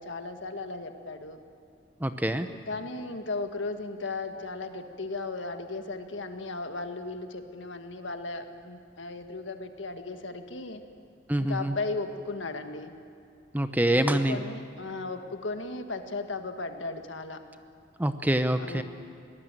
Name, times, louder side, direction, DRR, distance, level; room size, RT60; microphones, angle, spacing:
voice 1, 0.0-1.4 2.5-10.8 11.5-12.9 13.9-17.4 18.6-18.8, left 3 dB, 80° left, 7 dB, 1.6 m, -36 dB
voice 2, 2.0-2.5 11.3-11.7 13.5-14.4 18.0-18.8, right 1 dB, 10° right, 9 dB, 0.7 m, -25 dB
23.0 x 18.5 x 9.0 m, 2.6 s
head